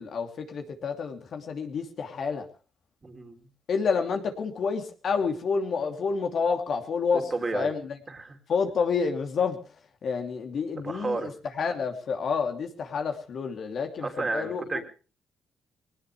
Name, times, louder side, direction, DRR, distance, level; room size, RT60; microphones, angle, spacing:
voice 1, 0.0-2.5 3.7-8.0 8.5-9.6 10.0-14.8, left 5 dB, 60° left, 4 dB, 2.8 m, -29 dB
voice 2, 3.0-3.5 7.3-7.7 8.1-8.4 10.8-11.3 14.0-14.8, right 3 dB, 25° right, 5 dB, 3.3 m, -32 dB
21.0 x 19.0 x 3.3 m, 0.35 s
cardioid pair, 90°, 0 cm